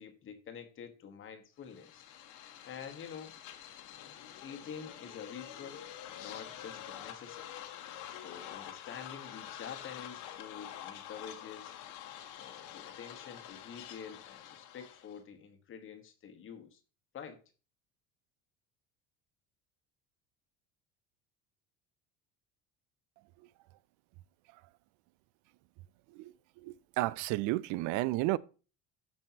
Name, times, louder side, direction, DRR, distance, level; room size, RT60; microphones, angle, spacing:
voice 1, 0.0-2.0 2.6-3.4 4.4-5.8 6.2-7.5 8.1-11.8 12.4-16.8 17.1-17.4, left 7 dB, 40° left, 1.2 m, -47 dB
sound 1, 1.6-15.2, left 11 dB, 75° left, 1.3 m, -47 dB
voice 2, 26.6-28.4, right 18 dB, 65° right, 0.5 m, -32 dB
13.5 x 5.4 x 2.8 m
cardioid pair, 130°, 32 cm